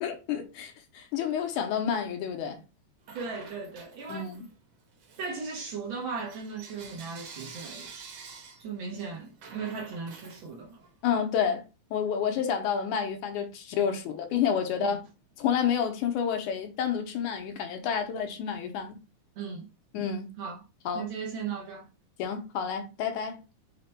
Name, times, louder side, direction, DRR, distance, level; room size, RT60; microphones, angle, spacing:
voice 1, 0.0-2.6 4.1-4.5 11.0-11.6 11.9-15.0 15.4-19.0 19.9-20.3 20.9-21.1 22.2-23.4, left 7 dB, 85° left, 2.3 m, -29 dB
Bell / Coin (dropping), 3.0-4.6 5.0-11.0, right 5 dB, 65° right, 1.7 m, -48 dB
voice 2, 3.1-4.3 5.2-7.9 8.6-10.8 14.8-15.0 19.4-19.7 20.4-20.6 20.9-21.9, right 5 dB, 85° right, 1.0 m, -37 dB
5.9 x 2.2 x 4.2 m
omnidirectional pair, 3.5 m